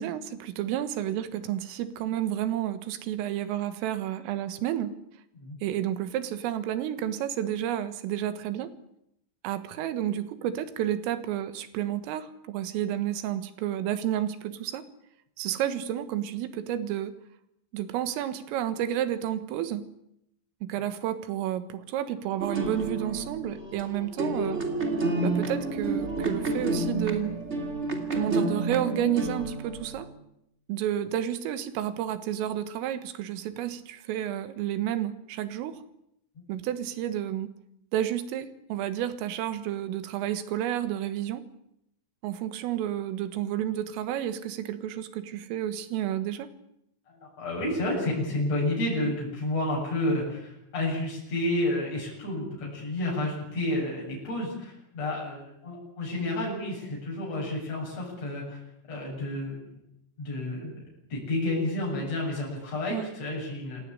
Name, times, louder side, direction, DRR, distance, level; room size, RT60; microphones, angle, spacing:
voice 1, 0.0-4.9 5.6-8.7 9.4-14.8 15.4-17.1 17.7-19.8 20.6-24.6 25.2-27.3 28.1-30.1 30.7-35.8 36.5-37.5 37.9-41.4 42.2-46.5 62.9-63.1, right 11 dB, 80° right, 12 dB, 4.1 m, -31 dB
sound 1, 22.4-30.1, right 2 dB, 25° right, 1.4 m, -30 dB
voice 2, 47.2-58.6 58.9-59.6 60.2-60.8 61.1-63.8, left 1 dB, 30° left, -4 dB, 9.0 m, -30 dB
28.0 x 16.5 x 9.8 m, 0.79 s
omnidirectional pair, 5.9 m